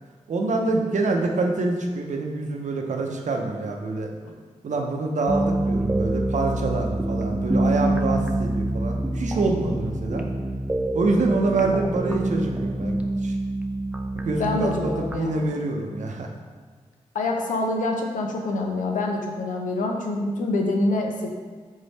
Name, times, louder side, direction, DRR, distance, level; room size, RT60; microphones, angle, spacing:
voice 1, 0.3-4.1 4.6-10.3 10.9-13.4 14.1-16.3, right 3 dB, 70° right, 2 dB, 0.6 m, -26 dB
sound 1, 5.3-15.2, right 1 dB, 10° right, 0.4 m, -26 dB
voice 2, 14.4-15.5 17.1-21.3, left 2 dB, 85° left, 2 dB, 0.6 m, -26 dB
3.6 x 3.4 x 4.0 m, 1.5 s
cardioid pair, 40°, 13 cm